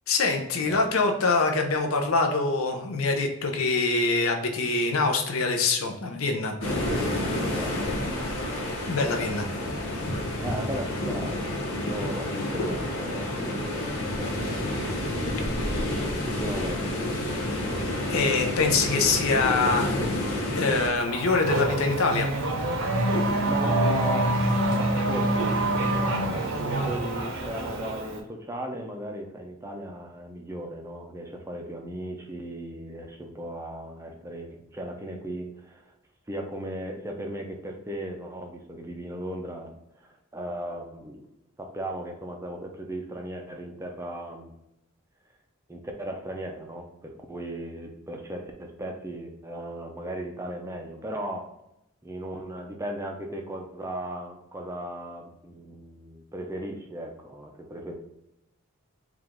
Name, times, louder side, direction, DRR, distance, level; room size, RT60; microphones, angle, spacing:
voice 1, 0.1-6.6 8.9-9.5 18.1-20.3 20.5-22.3, left 3 dB, 70° left, 3 dB, 0.6 m, -24 dB
sound 1, 6.6-20.9, left 1 dB, 85° left, 1.2 m, -29 dB
voice 2, 7.4-8.0 10.3-14.5 15.4-16.9 23.4-24.3 24.8-35.9 36.3-41.2 41.6-44.5 45.7-51.4 52.0-58.0, right 1 dB, 15° right, 2 dB, 0.5 m, -37 dB
Race car auto racing / Accelerating revving vroom, 21.0-28.2, right 1 dB, 55° right, 0.7 m, -26 dB
4.8 x 2.4 x 3.5 m, 0.84 s
head